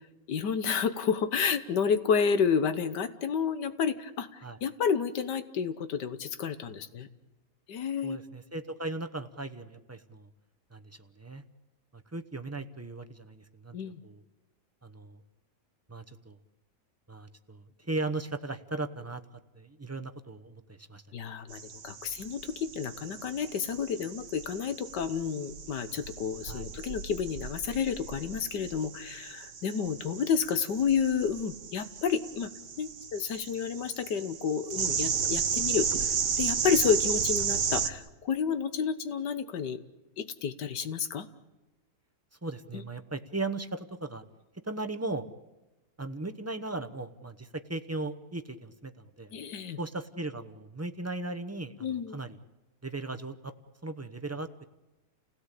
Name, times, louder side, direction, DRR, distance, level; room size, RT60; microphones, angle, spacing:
voice 1, 0.3-4.3 4.6-7.1 7.7-8.2 13.7-14.0 21.1-32.5 32.8-39.8 40.2-41.3 42.7-42.8 49.3-49.8 51.8-52.2, left 6 dB, 80° left, 11 dB, 1.7 m, -30 dB
voice 2, 8.0-10.3 10.7-11.4 11.9-14.2 14.8-15.2 15.9-16.4 17.1-19.2 19.5-21.0 26.5-26.7 42.4-44.2 44.6-45.2 46.0-49.3 49.8-52.4 52.8-53.5 53.8-54.6, right 2 dB, 15° right, 8 dB, 0.5 m, -37 dB
sound 1, 21.5-37.9, right 6 dB, 80° right, 2.0 m, -34 dB
29.5 x 17.0 x 8.3 m, 1.1 s
omnidirectional pair, 1.8 m